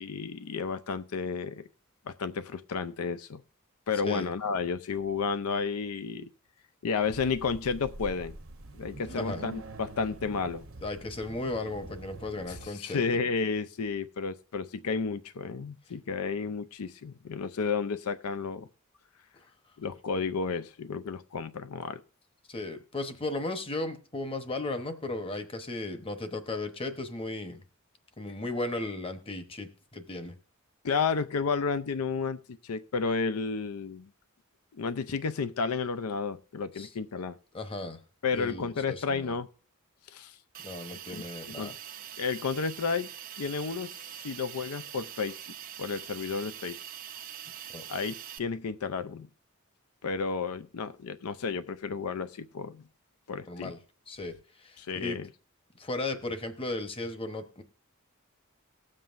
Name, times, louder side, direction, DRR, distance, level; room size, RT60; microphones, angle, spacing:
voice 1, 0.0-1.6 2.1-3.4 3.9-6.3 6.8-8.4 8.7-10.6 12.5-18.7 19.8-22.0 30.8-34.1 34.8-37.4 38.2-39.5 40.1-40.3 41.1-41.2 41.6-41.8 42.2-43.1 43.4-45.4 45.8-46.8 47.9-49.3 50.0-52.8 53.3-53.7 54.8-55.3, left 5 dB, 90° left, 13 dB, 0.5 m, -32 dB
sound 1, 7.0-12.7, right 2 dB, 65° right, 0.9 m, -45 dB
voice 2, 9.1-9.5 10.8-13.0 22.5-27.6 28.2-30.4 36.7-36.9 37.5-38.0 38.3-39.3 40.6-41.7 47.7-47.8 53.5-53.8 54.1-55.2 55.8-57.6, left 2 dB, 25° left, 7 dB, 0.9 m, -36 dB
Hiss, 40.5-48.4, right 11 dB, 40° right, 0.5 m, -43 dB
19.0 x 7.5 x 2.5 m, 0.39 s
head